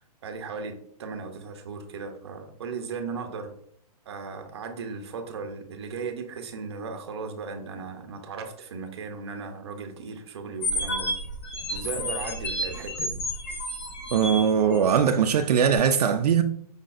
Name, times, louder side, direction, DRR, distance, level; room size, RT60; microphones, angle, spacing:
voice 1, 0.2-3.5 4.1-11.1 11.7-13.2, right 5 dB, 40° right, 0.7 m, -36 dB
sound 1, 10.6-15.2, equal, 20° left, 0.5 m, -31 dB
voice 2, 14.1-16.4, right 7 dB, 75° right, 0.5 m, -21 dB
5.1 x 3.9 x 2.5 m
hypercardioid pair, 180°, 20 cm